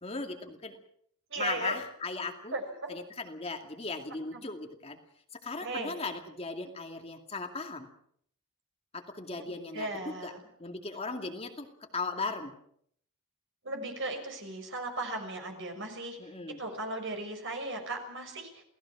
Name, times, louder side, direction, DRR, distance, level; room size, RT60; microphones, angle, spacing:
voice 1, 0.0-0.8 1.4-2.5 2.9-5.0 5.3-7.9 8.9-10.3 10.6-12.5 16.2-16.6, left 3 dB, 25° left, 4 dB, 2.4 m, -37 dB
voice 2, 1.3-1.7 2.5-2.9 4.3-4.4 5.6-5.9 9.3-10.4 13.6-16.2 16.6-18.6, right 2 dB, 55° right, 4 dB, 6.1 m, -37 dB
28.5 x 18.5 x 6.1 m, 0.66 s
head